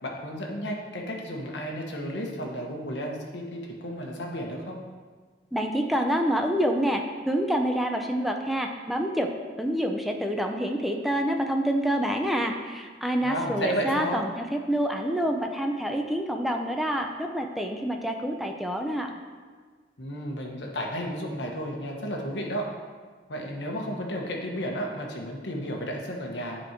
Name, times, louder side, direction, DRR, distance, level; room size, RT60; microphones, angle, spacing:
voice 1, 0.0-4.8 13.2-14.2 20.0-22.6 23.3-26.6, equal, 80° left, 0 dB, 1.2 m, -33 dB
voice 2, 5.5-9.3 9.6-19.1, equal, ahead, 3 dB, 0.5 m, -27 dB
9.4 x 4.3 x 4.5 m, 1.5 s
head